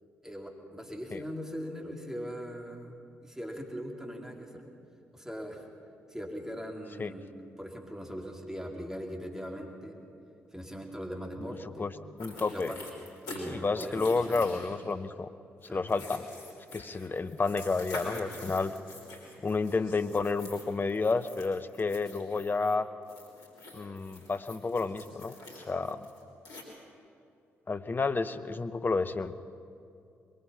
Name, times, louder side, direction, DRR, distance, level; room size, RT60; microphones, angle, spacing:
voice 1, 0.2-4.6 5.1-5.7 6.1-9.9 10.5-11.9 12.5-12.8 13.3-14.4 15.7-15.8, equal, 5° right, 0 dB, 4.0 m, -40 dB
sound 1, 12.2-13.4 13.8-14.9 15.6-22.7 23.1-26.6, left 2 dB, 75° left, 3.5 m, -46 dB
voice 2, 12.2-12.7 13.5-15.3 15.7-16.3 16.7-18.7 19.4-22.9 23.7-25.3 25.6-26.1 27.7-29.3, left 4 dB, 30° left, 11 dB, 1.0 m, -30 dB
22.0 x 21.5 x 5.8 m, 2.5 s
hypercardioid pair, 40°, 7 cm